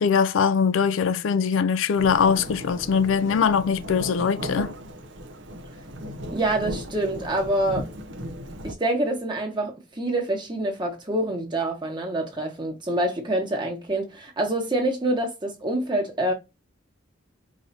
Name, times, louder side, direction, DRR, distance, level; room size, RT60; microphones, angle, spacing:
voice 1, 0.0-4.7, left 6 dB, 75° left, 0.4 m, -22 dB
Thunderstorm / Rain, 2.0-8.7, equal, 65° right, 0.7 m, -36 dB
voice 2, 6.3-7.9 8.6-16.3, right 1 dB, 25° right, 1.3 m, -26 dB
4.8 x 2.8 x 2.7 m
head